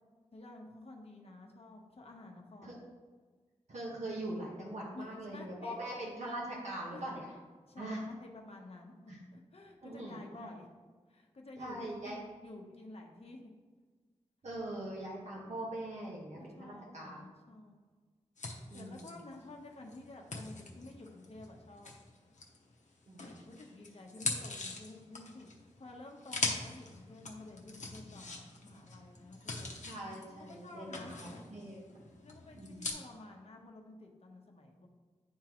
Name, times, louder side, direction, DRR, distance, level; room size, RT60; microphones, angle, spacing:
voice 1, 0.3-2.8 4.9-6.1 6.9-7.0 7.7-10.7 11.1-13.5 16.4-17.8 18.7-21.9 23.4-25.5 25.8-29.8 30.4-31.2 32.2-34.9, left 2 dB, 55° left, 1 dB, 1.0 m, -51 dB
voice 2, 3.7-7.3 7.8-8.0 9.1-9.2 9.8-10.5 11.6-12.2 14.4-17.2 18.7-19.1 23.1-23.4 29.9-32.1 32.5-32.8, right 1 dB, 70° right, -4 dB, 1.3 m, -42 dB
sound 1, 18.4-22.7 23.2-32.9, left 3 dB, 75° left, 0.9 m, -42 dB
10.5 x 3.7 x 3.0 m, 1.5 s
wide cardioid pair, 105°, 12 cm